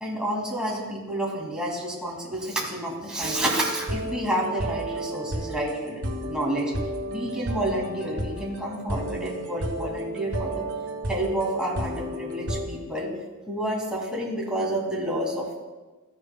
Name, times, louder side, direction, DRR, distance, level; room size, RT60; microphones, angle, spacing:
voice 1, 0.0-6.7 7.1-10.6 11.1-13.1 13.5-15.5, right 1 dB, 5° right, -4 dB, 2.1 m, -29 dB
sound 1, 3.2-12.7, right 1 dB, 55° right, 1.7 m, -32 dB
14.0 x 9.4 x 2.2 m, 1.2 s
head